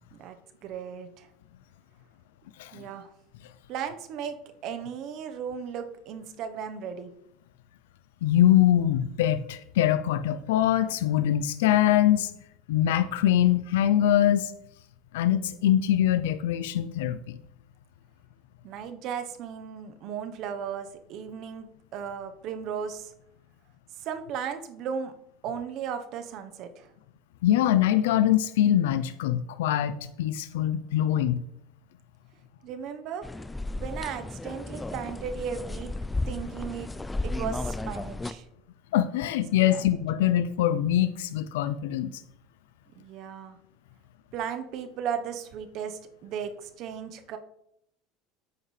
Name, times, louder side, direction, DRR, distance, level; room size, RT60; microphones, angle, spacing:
voice 1, 0.6-1.3 2.7-3.1 3.7-4.4 4.6-7.1 18.6-21.7 21.9-23.1 24.0-25.1 25.4-26.9 32.6-33.3 33.8-36.0 36.3-36.9 37.2-38.5 39.6-39.8 43.0-43.6 44.3-47.4, right 7 dB, 55° right, 8 dB, 1.0 m, -36 dB
voice 2, 8.2-12.3 12.7-14.5 15.1-17.4 27.4-31.4 38.9-42.1, left 11 dB, 90° left, 12 dB, 0.4 m, -23 dB
sound 1, 33.2-38.3, left 2 dB, 10° left, 0.5 m, -34 dB
9.3 x 7.9 x 3.3 m, 0.77 s
supercardioid pair, 110°, 0 cm